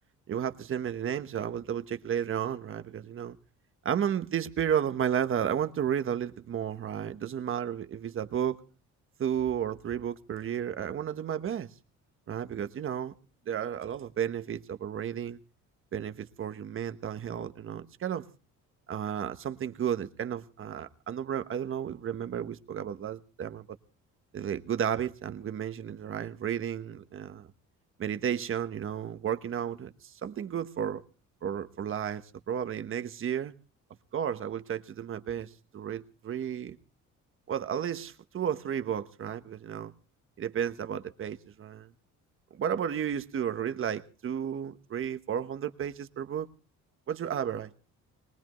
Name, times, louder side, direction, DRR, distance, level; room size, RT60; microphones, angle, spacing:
voice 1, 0.3-3.4 3.8-8.6 9.2-11.7 12.3-13.1 13.5-15.4 15.9-18.3 18.9-23.6 24.3-27.5 28.0-31.0 31.4-33.5 34.1-36.8 37.5-39.9 40.4-41.9 42.5-46.5 47.1-47.7, right 9 dB, 45° right, 1.1 m, -33 dB
22.0 x 19.5 x 3.1 m
cardioid pair, 140°, 31 cm